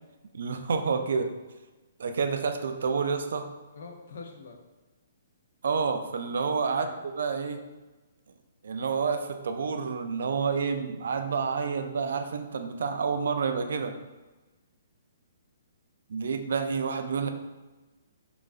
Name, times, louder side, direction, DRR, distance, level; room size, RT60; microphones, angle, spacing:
voice 1, 0.3-1.3 2.0-3.5 5.6-7.6 8.6-13.9 16.1-17.3, right 5 dB, 70° right, 7 dB, 0.3 m, -29 dB
voice 2, 3.7-4.5 6.8-7.0 17.2-17.3, left 4 dB, 60° left, 2 dB, 0.6 m, -44 dB
4.7 x 2.5 x 2.4 m, 1.2 s
hypercardioid pair, 175°, 0 cm